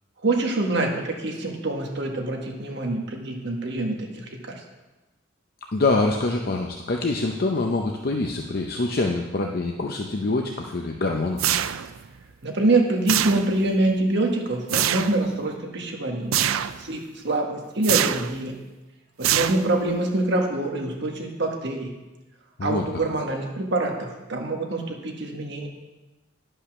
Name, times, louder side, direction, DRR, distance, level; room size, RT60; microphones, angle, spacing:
voice 1, 0.2-4.2 12.4-16.5 16.8-18.5 19.2-21.9 22.6-25.7, right 2 dB, 55° right, 1 dB, 1.6 m, -25 dB
voice 2, 5.7-11.4 22.6-22.8, left 2 dB, 50° left, 2 dB, 0.6 m, -25 dB
sound 1, 11.4-12.1 13.1-13.7 14.7-15.2 16.3-16.8 17.8-18.4 19.2-19.9, right 11 dB, 80° right, 0.4 m, -24 dB
10.5 x 5.6 x 6.1 m, 1.1 s
head